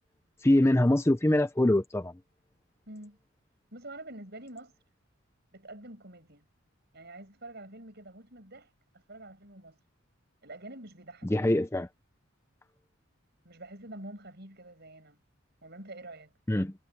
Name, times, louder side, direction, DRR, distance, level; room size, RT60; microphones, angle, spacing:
voice 1, 0.4-2.1 11.3-11.9 16.5-16.7, left 1 dB, 10° left, 0.6 m, -24 dB
voice 2, 2.9-3.2 3.7-4.7 5.5-6.5 6.9-8.7 9.1-9.8 10.4-11.5 13.4-15.2 15.6-16.3, right 1 dB, 50° right, 7.1 m, -46 dB
head